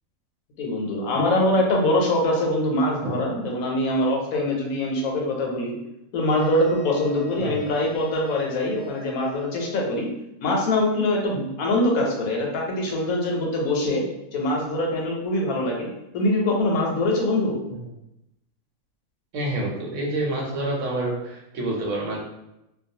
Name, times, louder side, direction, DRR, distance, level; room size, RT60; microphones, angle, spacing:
voice 1, 0.6-5.7 6.1-10.1 10.4-14.0 14.3-15.9 16.1-17.6, left 1 dB, 90° left, 0 dB, 1.1 m, -23 dB
sound 1, 6.4-10.0, right 6 dB, 65° left, 0.7 m, -43 dB
voice 2, 19.3-22.2, right 1 dB, 65° right, -3 dB, 1.0 m, -28 dB
2.3 x 2.2 x 2.7 m, 0.87 s
omnidirectional pair, 1.4 m